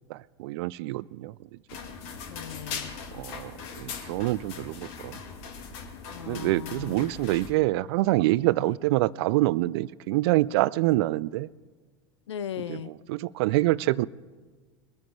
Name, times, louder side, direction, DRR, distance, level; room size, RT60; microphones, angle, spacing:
voice 1, 0.1-1.5 3.1-5.2 6.3-11.5 12.7-14.1, right 18 dB, 65° right, 21 dB, 0.4 m, -26 dB
sound 1, 1.7-7.5, left 5 dB, 60° left, 1.7 m, -40 dB
voice 2, 2.3-2.9 6.1-7.1 8.6-8.7 12.3-12.9, left 9 dB, 85° left, 16 dB, 0.5 m, -38 dB
22.0 x 8.6 x 4.6 m, 1.4 s
hypercardioid pair, 85°, 14 cm